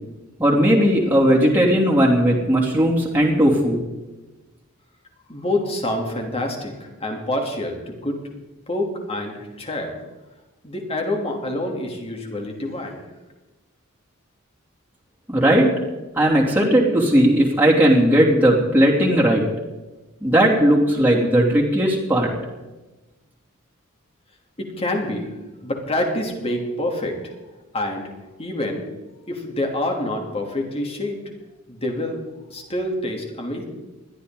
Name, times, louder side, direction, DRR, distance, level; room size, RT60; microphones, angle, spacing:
voice 1, 0.4-3.8 15.3-15.7 16.2-19.4 20.2-22.3, right 1 dB, 10° right, -4 dB, 3.0 m, -17 dB
voice 2, 5.3-8.2 8.7-9.9 10.6-13.0 24.6-25.3 25.6-27.3 27.7-28.0 28.4-28.8 29.3-31.2 31.7-32.2 32.5-33.6, left 1 dB, 30° left, 2 dB, 3.1 m, -27 dB
20.5 x 13.5 x 4.0 m, 1.1 s
head